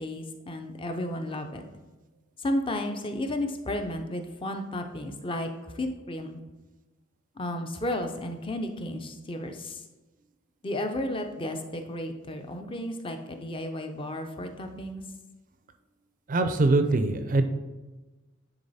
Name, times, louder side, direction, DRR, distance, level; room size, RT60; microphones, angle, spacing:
voice 1, 0.0-1.6 2.4-5.5 5.7-6.4 7.4-9.8 10.6-15.0, left 1 dB, 25° left, 5 dB, 0.6 m, -33 dB
voice 2, 16.3-17.5, right 2 dB, 40° right, 8 dB, 0.4 m, -23 dB
9.7 x 3.9 x 4.1 m, 1.2 s
head